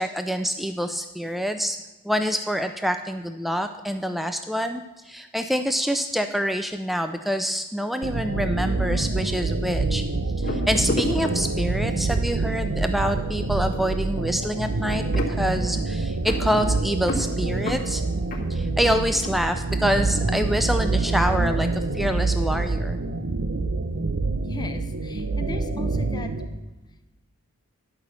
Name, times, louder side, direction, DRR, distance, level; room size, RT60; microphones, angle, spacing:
voice 1, 0.0-1.8 2.0-10.0 10.4-18.0 18.5-23.0, equal, ahead, 7 dB, 0.4 m, -26 dB
sound 1, 8.0-26.5, right 3 dB, 55° right, 0.8 m, -26 dB
sound 2, 10.4-12.0 12.7-12.9 13.2-20.3 20.6-21.2, left 2 dB, 40° left, 2.1 m, -33 dB
voice 2, 24.4-26.3, left 2 dB, 20° left, 6 dB, 0.8 m, -37 dB
11.5 x 6.0 x 6.8 m, 1.1 s
head